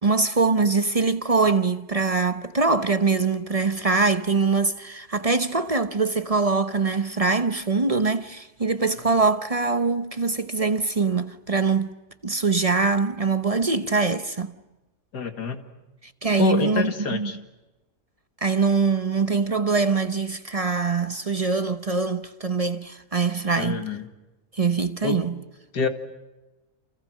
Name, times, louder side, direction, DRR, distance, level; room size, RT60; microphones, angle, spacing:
voice 1, 0.0-11.9 12.2-14.5 16.2-17.3 18.4-23.9 24.5-25.4, right 4 dB, 30° right, 0.7 m, -23 dB
voice 2, 15.1-15.6 16.4-17.4 23.6-24.0 25.0-25.2 25.7-25.9, left 5 dB, 85° left, 2.7 m, -26 dB
29.5 x 28.5 x 6.3 m
omnidirectional pair, 1.7 m